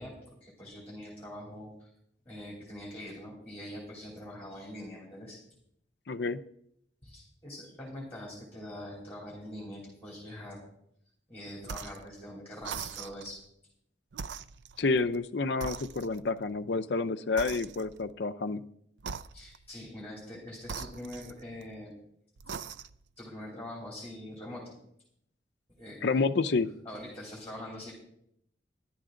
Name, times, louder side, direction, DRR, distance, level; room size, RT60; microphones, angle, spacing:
voice 1, 0.0-1.9 2.2-5.4 7.0-10.6 11.3-13.4 19.3-21.9 23.2-24.7 25.8-26.0 26.8-27.9, left 1 dB, 10° left, -4 dB, 3.1 m, -43 dB
voice 2, 6.1-6.4 14.8-18.6 26.0-26.7, left 3 dB, 70° left, 9 dB, 0.6 m, -29 dB
sound 1, 11.6-12.1 12.6-13.4 14.1-15.2 15.6-16.4 17.4-18.1 19.0-19.7 20.6-21.8 22.4-23.1, right 6 dB, 80° right, 0.5 m, -42 dB
13.0 x 11.0 x 3.8 m, 0.71 s
head